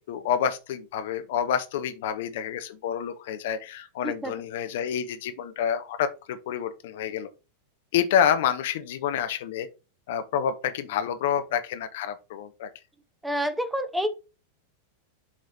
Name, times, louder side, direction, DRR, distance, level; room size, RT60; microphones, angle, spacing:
voice 1, 0.1-7.3 7.9-9.7 10.1-12.7, left 8 dB, 55° left, 0.7 m, -28 dB
voice 2, 13.2-14.1, equal, 5° right, 0.7 m, -28 dB
7.3 x 3.2 x 4.1 m
figure-of-eight pair, 90°, 0 cm